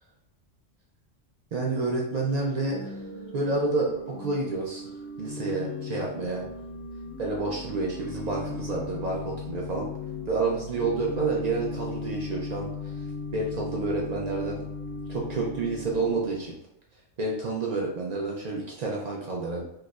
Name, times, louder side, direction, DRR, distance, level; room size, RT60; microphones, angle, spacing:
voice 1, 1.5-3.0 3.3-4.9 5.2-6.5 7.2-9.9 10.3-13.0 13.3-14.6 15.1-16.5 17.2-19.6, right 3 dB, 85° right, -2 dB, 0.3 m, -29 dB
Organ / Church bell, 2.4-16.6, left 4 dB, 65° left, 1.3 m, -38 dB
4.6 x 2.0 x 2.3 m, 0.81 s
omnidirectional pair, 1.3 m